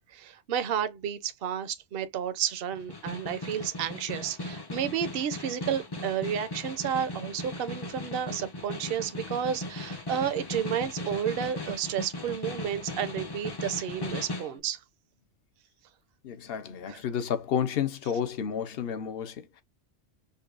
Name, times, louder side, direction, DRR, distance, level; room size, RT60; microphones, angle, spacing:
voice 1, 0.0-14.8 16.9-17.0, right 9 dB, 55° right, 0.8 m, -31 dB
Snare drum, 2.7-14.6, left 2 dB, 25° left, 0.5 m, -38 dB
voice 2, 16.2-19.6, left 8 dB, 55° left, 0.9 m, -31 dB
5.3 x 2.3 x 2.5 m
omnidirectional pair, 1.3 m